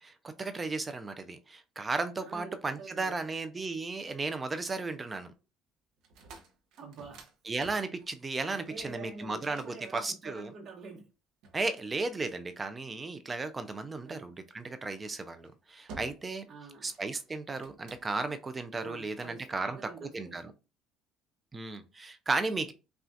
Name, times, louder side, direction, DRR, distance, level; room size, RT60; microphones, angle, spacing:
voice 1, 0.0-5.3 7.5-10.5 11.5-16.5 16.8-19.8 20.1-20.4 21.5-22.7, right 3 dB, 20° right, 0.5 m, -35 dB
voice 2, 2.2-3.3 6.8-7.2 8.5-11.1 14.0-14.3 16.5-16.9 18.8-20.5, right 4 dB, 50° right, 1.1 m, -47 dB
sound 1, 6.0-10.7 11.4-12.7 14.5-14.8 15.3-15.5 15.9-16.4 16.7-18.3 18.8-19.4, right 3 dB, 75° right, 0.9 m, -53 dB
5.6 x 2.4 x 2.6 m
cardioid pair, 110°, 0 cm